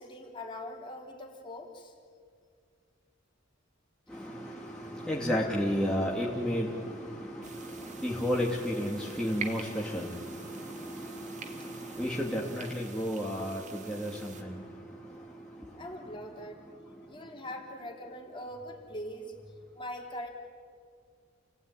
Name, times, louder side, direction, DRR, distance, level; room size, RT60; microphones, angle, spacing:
voice 1, 0.0-1.9 4.7-4.9 15.8-16.6 17.1-19.4 19.8-20.3, left 1 dB, 25° left, 1 dB, 3.6 m, -42 dB
voice 2, 4.1-14.6, equal, 5° left, -4 dB, 2.4 m, -33 dB
sound 1, 7.4-14.4, right 4 dB, 40° right, 2.3 m, -46 dB
29.0 x 18.5 x 9.8 m, 2.1 s
head